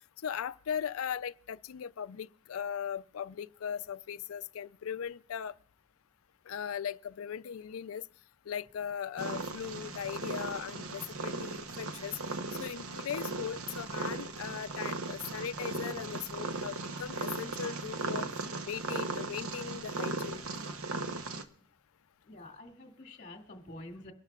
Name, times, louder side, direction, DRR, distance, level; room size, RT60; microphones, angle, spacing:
voice 1, 0.2-5.5 6.5-8.0 8.5-12.2 12.6-18.2 18.6-20.7, left 8 dB, 75° left, 0.4 m, -38 dB
Purr, 9.2-21.4, right 3 dB, 90° right, 0.9 m, -37 dB
voice 2, 22.3-24.1, left 1 dB, 35° left, 2.3 m, -48 dB
24.0 x 12.0 x 2.4 m
head